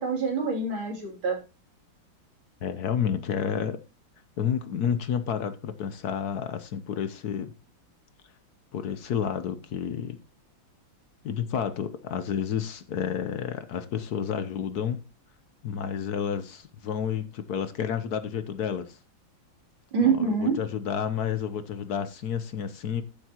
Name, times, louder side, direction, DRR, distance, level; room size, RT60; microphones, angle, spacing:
voice 1, 0.0-1.4 19.9-20.6, right 5 dB, 85° right, 3.8 m, -25 dB
voice 2, 2.6-3.8 4.4-7.5 8.7-10.2 11.2-15.0 15.6-19.0 20.0-23.0, left 8 dB, 60° left, 1.2 m, -30 dB
13.5 x 7.6 x 2.9 m
omnidirectional pair, 2.1 m